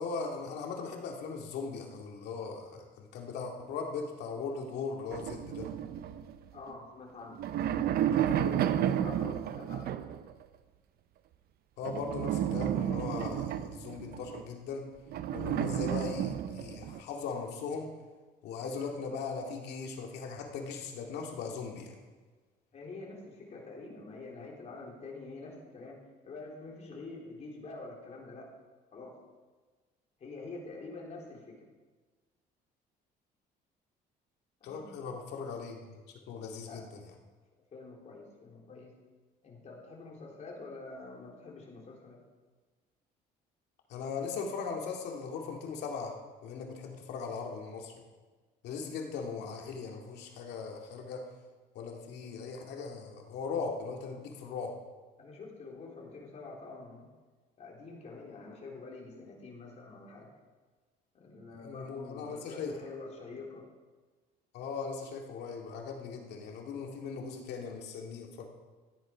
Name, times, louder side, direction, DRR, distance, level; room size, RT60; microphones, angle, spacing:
voice 1, 0.0-5.7 8.2-8.3 8.9-9.0 11.8-14.9 15.3-17.9 18.4-22.1 34.6-35.8 36.1-37.0 43.9-46.1 46.4-47.9 48.6-51.3 51.7-54.8 61.6-62.8 64.5-68.5, left 5 dB, 80° left, 2 dB, 2.3 m, -39 dB
sound 1, 5.1-6.7 7.2-10.3 11.8-14.4 15.1-17.0, right 10 dB, 65° right, 0.7 m, -32 dB
voice 2, 6.5-7.4 8.1-9.9 22.7-26.0 26.2-28.5 28.9-29.1 30.2-31.7 34.6-35.0 36.6-36.9 37.7-38.9 39.4-42.2 55.2-57.1 57.6-60.3 61.1-63.6, left 3 dB, 40° left, -2 dB, 3.7 m, -46 dB
14.0 x 9.9 x 5.1 m, 1.4 s
cardioid pair, 110°, 17 cm